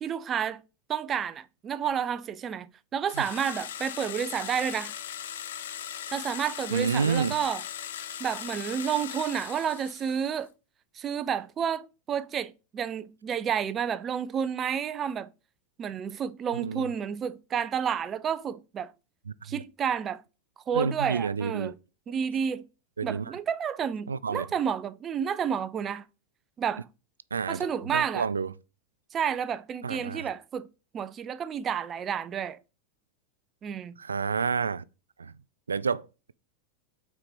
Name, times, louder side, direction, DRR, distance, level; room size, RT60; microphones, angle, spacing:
voice 1, 0.0-0.6 0.9-4.9 6.1-7.6 8.2-10.5 11.0-15.3 15.8-18.9 19.4-20.2 20.7-21.7 22.1-22.6 23.0-26.1 26.6-26.8 27.5-28.3 29.1-30.7 30.9-32.6 33.6-34.0, right 8 dB, 30° right, 0.6 m, -30 dB
sound 1, 3.1-10.4, left 10 dB, 75° left, 0.6 m, -39 dB
voice 2, 6.7-7.4 16.5-16.9 19.3-19.6 20.7-21.7 23.0-23.4 24.1-24.5 27.3-28.5 29.8-30.3 34.0-34.8 35.2-35.3 35.7-36.3, right 5 dB, 90° right, 0.3 m, -29 dB
5.7 x 4.4 x 5.3 m
hypercardioid pair, 95°, 0 cm